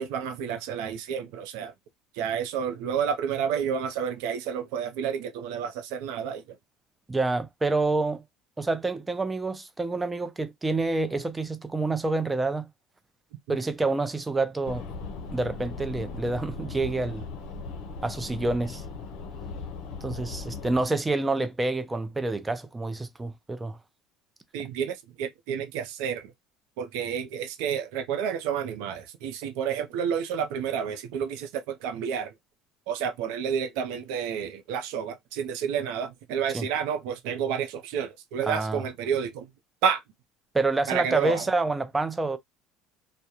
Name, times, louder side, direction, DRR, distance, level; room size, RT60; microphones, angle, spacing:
voice 1, 0.0-1.7 2.1-6.6 24.5-26.3 26.8-32.3 32.9-39.5 39.8-40.0 40.9-41.5, right 7 dB, 75° right, 0.5 m, -30 dB
voice 2, 7.1-8.2 8.6-12.7 13.5-14.8 15.3-17.3 18.0-18.8 20.0-23.8 24.6-24.7 36.5-36.7 38.4-38.8 40.5-42.4, right 3 dB, 15° right, 0.5 m, -28 dB
sound 1, 14.6-20.9, left 4 dB, 70° left, 0.6 m, -38 dB
2.3 x 2.1 x 2.8 m
supercardioid pair, 90°, 0 cm